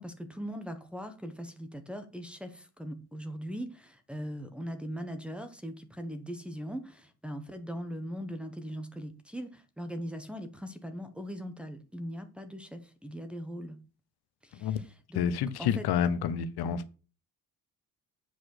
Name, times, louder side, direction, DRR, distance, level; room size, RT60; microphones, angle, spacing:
voice 1, 0.0-13.8 14.4-15.2 15.6-15.9 16.6-16.8, equal, 5° right, 0.9 m, -40 dB
voice 2, 15.1-17.0, left 8 dB, 70° left, 0.9 m, -29 dB
8.1 x 5.0 x 6.4 m
cardioid pair, 155°, 40 cm